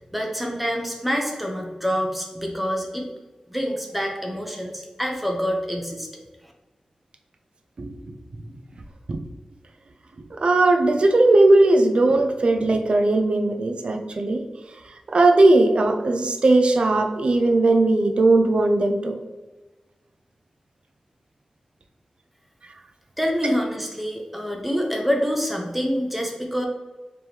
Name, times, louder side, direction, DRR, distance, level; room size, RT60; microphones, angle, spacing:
voice 1, 0.0-3.1 3.5-6.1 6.4-6.5 23.2-26.7, equal, 5° right, 1 dB, 0.9 m, -26 dB
voice 2, 10.3-14.4 15.1-19.2 23.4-23.5, right 2 dB, 60° right, 4 dB, 0.5 m, -18 dB
4.5 x 3.0 x 3.5 m, 1.2 s
wide cardioid pair, 95°, 2 cm